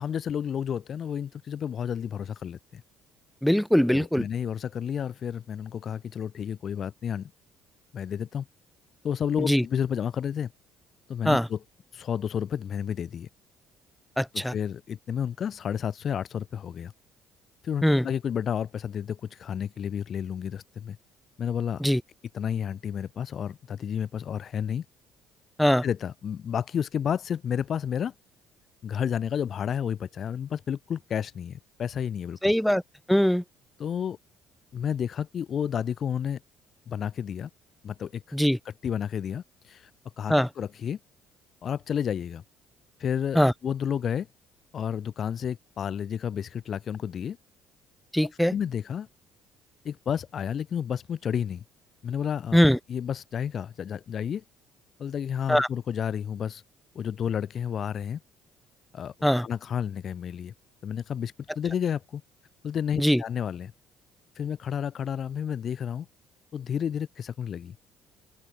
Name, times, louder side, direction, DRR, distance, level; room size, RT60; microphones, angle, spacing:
voice 1, 0.0-2.8 3.9-7.3 7.9-8.5 9.0-10.5 11.1-11.6 11.9-13.3 14.3-16.9 17.6-21.0 21.4-21.8 22.3-24.8 25.8-28.1 28.8-32.5 33.8-34.2 34.7-36.4 36.9-37.5 37.8-38.4 38.8-39.9 40.2-41.0 41.6-42.4 43.0-44.3 44.7-47.4 48.5-49.1 49.8-51.6 52.0-52.6 52.9-54.4 55.0-56.6 57.0-58.2 58.9-60.5 60.8-62.2 62.6-63.7 64.4-66.1 66.5-67.8, left 8 dB, 50° left, 0.4 m, -31 dB
voice 2, 3.4-4.3 9.4-9.6 11.2-11.5 14.2-14.5 17.8-18.0 21.8-22.0 25.6-25.8 32.4-32.8 33.1-33.4 38.3-38.6 40.3-40.5 43.3-43.5 48.1-48.5 52.5-52.8 55.5-55.7 59.2-59.5 63.0-63.2, equal, 5° left, 0.8 m, -21 dB
open air
hypercardioid pair, 55°, 0 cm